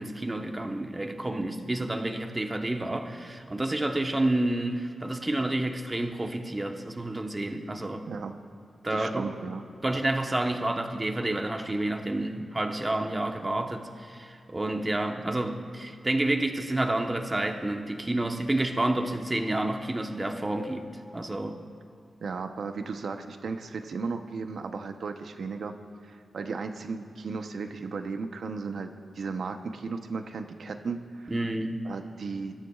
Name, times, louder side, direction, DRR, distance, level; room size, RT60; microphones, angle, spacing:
voice 1, 0.0-8.0 8.8-9.3 9.8-21.6 31.3-31.8, right 1 dB, 20° right, 4 dB, 1.1 m, -29 dB
voice 2, 8.9-9.6 22.2-25.8 26.0-31.3 31.8-32.5, right 4 dB, 75° right, 6 dB, 0.8 m, -35 dB
24.5 x 13.0 x 2.4 m, 2.3 s
wide cardioid pair, 90°, 0 cm